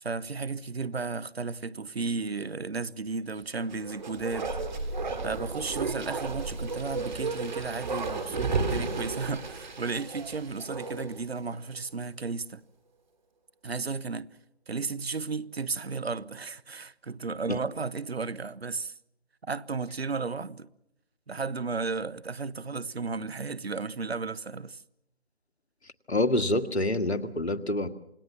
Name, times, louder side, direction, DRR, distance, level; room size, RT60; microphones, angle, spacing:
voice 1, 0.0-4.6 5.2-12.6 13.6-14.3 14.7-18.9 19.4-20.7 21.3-24.8, right 4 dB, 75° right, 1.1 m, -34 dB
Bark, 3.6-11.2 11.5-11.6, right 3 dB, 45° right, 3.3 m, -33 dB
voice 2, 26.1-27.9, left 2 dB, 85° left, 1.8 m, -26 dB
28.0 x 19.0 x 7.2 m
figure-of-eight pair, 155°, 32 cm